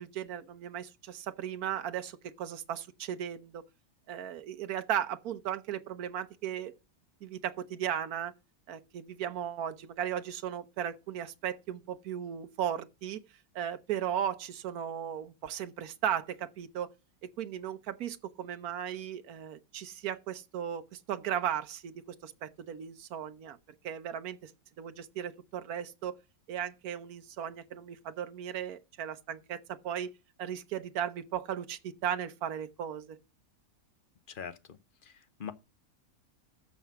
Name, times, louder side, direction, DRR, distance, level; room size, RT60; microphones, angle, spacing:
voice 1, 0.0-3.6 4.1-6.7 7.2-8.3 8.7-13.2 13.5-16.9 17.2-23.6 23.8-24.5 24.8-26.2 26.5-30.1 30.4-33.2, right 9 dB, 90° right, 1.3 m, -36 dB
voice 2, 34.3-34.8 35.0-35.5, left 7 dB, 45° left, 0.8 m, -43 dB
13.5 x 4.9 x 5.7 m
omnidirectional pair, 1.5 m